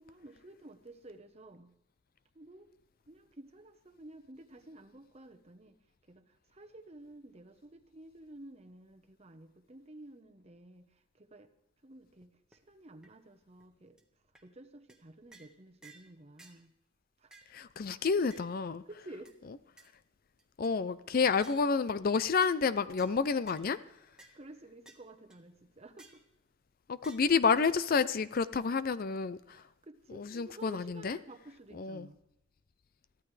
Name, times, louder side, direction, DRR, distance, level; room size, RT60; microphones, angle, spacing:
voice 1, 0.0-1.7 2.3-2.7 3.1-5.8 6.1-11.5 11.8-14.0 14.4-16.7 17.2-17.3 18.9-19.3 24.3-26.1 29.5-32.2, right 1 dB, 30° right, 6 dB, 1.0 m, -52 dB
sound 1, 12.2-12.3 12.5-12.6 13.0-13.1 13.6-13.7 14.0-14.1 14.4-14.5 14.9-15.0 15.3-15.5 15.8-16.1 16.4-16.6 17.3-17.5 18.3-18.5 19.3-19.4 19.8-19.9 20.4-20.7 21.4-21.7 22.4-22.6 23.0-23.1 23.5-23.7 24.2-24.4 24.9-25.0 25.3-25.4 26.0-26.2 27.0-27.2, right 3 dB, 5° right, 1.4 m, -57 dB
voice 2, 17.5-18.8 20.6-23.8 26.9-29.6 30.1-31.2 31.7-32.1, left 5 dB, 45° left, 15 dB, 0.5 m, -29 dB
22.5 x 14.5 x 3.3 m, 0.79 s
head